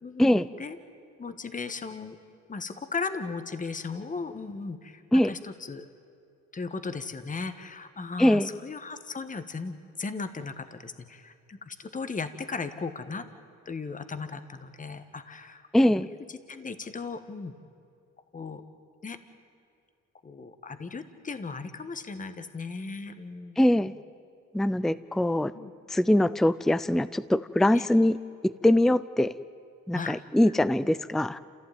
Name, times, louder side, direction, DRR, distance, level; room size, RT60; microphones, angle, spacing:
voice 1, 0.0-0.8 1.2-2.2 2.5-5.0 5.3-5.9 6.5-13.3 13.6-15.7 16.0-17.5 18.3-18.6 19.0-19.2 20.2-23.6 25.5-25.7 27.7-27.9 29.9-30.5, left 4 dB, 25° left, 10 dB, 1.4 m, -37 dB
voice 2, 8.2-8.5 15.7-16.1 23.6-23.9 24.5-25.5 25.9-28.1 28.6-29.3 29.9-31.4, left 1 dB, ahead, 16 dB, 0.5 m, -22 dB
28.0 x 15.5 x 9.2 m, 2.4 s
cardioid pair, 90°, 30 cm